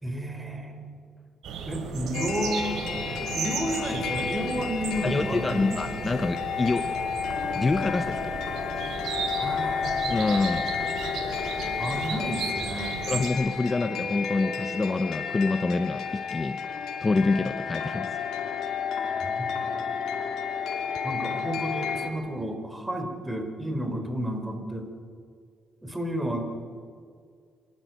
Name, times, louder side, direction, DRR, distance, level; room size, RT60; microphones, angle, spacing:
voice 1, 0.0-1.0 1.7-5.8 9.4-10.2 11.8-13.0 19.2-19.5 21.0-24.9 25.8-26.6, equal, 10° right, 5 dB, 4.0 m, -32 dB
sound 1, 1.4-13.3, right 6 dB, 75° right, 3.9 m, -35 dB
sound 2, 2.1-22.1, left 6 dB, 85° left, 3.0 m, -31 dB
voice 2, 5.0-6.9 7.5-8.3 10.1-10.7 13.1-16.6 17.0-18.2, left 3 dB, 25° left, 10 dB, 0.9 m, -26 dB
27.0 x 13.0 x 9.1 m, 2.2 s
cardioid pair, 95°, 0 cm